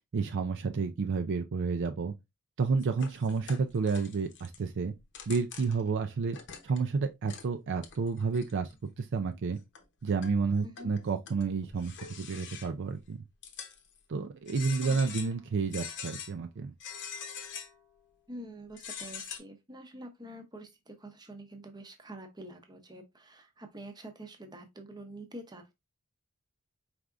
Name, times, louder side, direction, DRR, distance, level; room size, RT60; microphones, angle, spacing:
voice 1, 0.1-2.1 2.6-4.9 5.3-6.4 6.6-8.7 9.0-9.6 10.0-13.2 14.1-16.7, right 4 dB, 55° right, 0.4 m, -30 dB
sound 1, 2.8-4.6 5.0-5.9 6.3-7.0 7.3-7.4 7.8-8.8 9.3-9.4 9.7-10.4 10.8-12.9 13.4-14.0 14.5-15.4 15.7-16.3 16.8-17.8 18.7-19.4, left 7 dB, 55° left, 0.9 m, -44 dB
voice 2, 10.6-10.9 14.8-15.1 18.3-25.7, right 1 dB, 20° right, 0.8 m, -46 dB
4.8 x 3.4 x 2.5 m
head